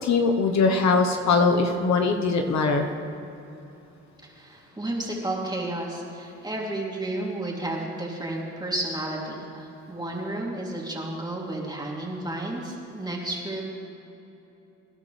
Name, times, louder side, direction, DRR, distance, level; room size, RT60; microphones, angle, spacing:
voice 1, 0.0-2.9, left 4 dB, 65° left, 3 dB, 1.3 m, -21 dB
voice 2, 4.2-13.6, right 1 dB, 15° right, -3 dB, 3.2 m, -32 dB
23.5 x 11.0 x 3.4 m, 3.0 s
cardioid pair, 90°, 30 cm